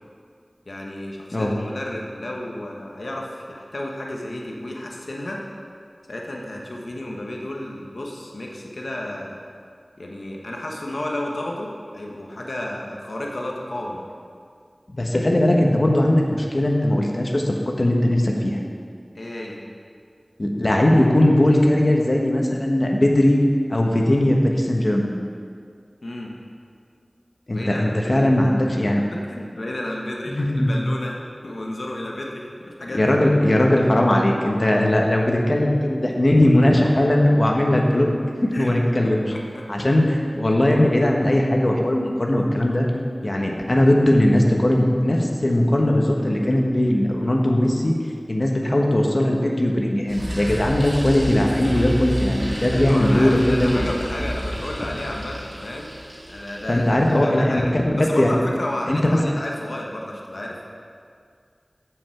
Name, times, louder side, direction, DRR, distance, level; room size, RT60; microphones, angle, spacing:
voice 1, 0.7-5.4 6.1-9.4 10.0-14.0 19.1-19.6 26.0-26.3 27.5-28.3 29.0-33.1 38.5-38.7 39.0-39.7 52.7-55.9 56.3-60.7, left 1 dB, 85° left, -1 dB, 1.2 m, -32 dB
voice 2, 14.9-18.6 20.4-23.4 23.7-25.1 27.5-29.0 30.3-30.7 32.9-38.1 38.4-39.2 39.7-42.9 43.2-48.0 48.3-53.9 56.7-57.8 58.2-58.3 58.9-59.2, left 1 dB, 50° left, 0 dB, 1.3 m, -19 dB
sound 1, 50.1-57.2, equal, 80° right, 2.1 m, -30 dB
8.0 x 7.2 x 5.8 m, 2.1 s
wide cardioid pair, 55°, 0 cm